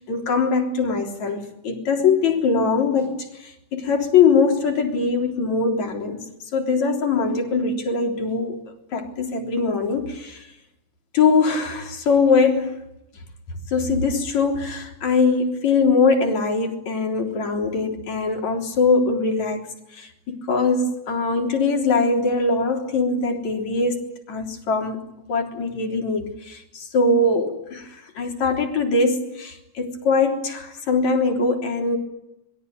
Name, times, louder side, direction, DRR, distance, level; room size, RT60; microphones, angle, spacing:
voice 1, 0.0-6.3 6.5-8.6 8.9-10.5 11.1-12.8 13.7-19.6 19.9-25.0 25.3-32.0, left 4 dB, 70° left, 3 dB, 5.0 m, -22 dB
26.5 x 22.0 x 9.4 m, 0.85 s
omnidirectional pair, 3.3 m